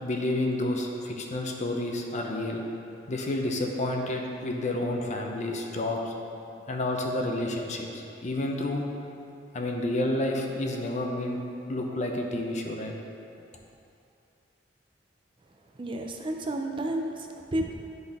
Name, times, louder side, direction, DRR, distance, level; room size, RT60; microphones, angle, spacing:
voice 1, 0.0-2.6 3.1-6.1 6.7-8.8 9.5-11.4 11.7-12.9, left 1 dB, 40° left, 1 dB, 0.7 m, -30 dB
voice 2, 15.8-17.7, right 1 dB, 30° right, 2 dB, 0.4 m, -31 dB
9.9 x 4.0 x 3.5 m, 2.6 s
head